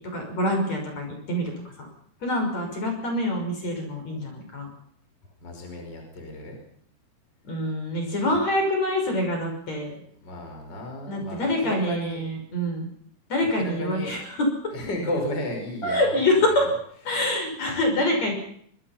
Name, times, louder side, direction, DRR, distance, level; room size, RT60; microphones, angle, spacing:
voice 1, 0.0-1.9 2.2-4.7 7.5-9.9 11.1-12.9 13.3-14.5 15.8-16.7 17.1-18.3, left 1 dB, 45° left, 3 dB, 7.0 m, -25 dB
voice 2, 5.4-6.6 10.2-12.2 13.6-14.2 14.7-16.7, left 1 dB, 25° left, 3 dB, 6.0 m, -33 dB
25.0 x 24.0 x 5.9 m, 0.65 s
omnidirectional pair, 4.4 m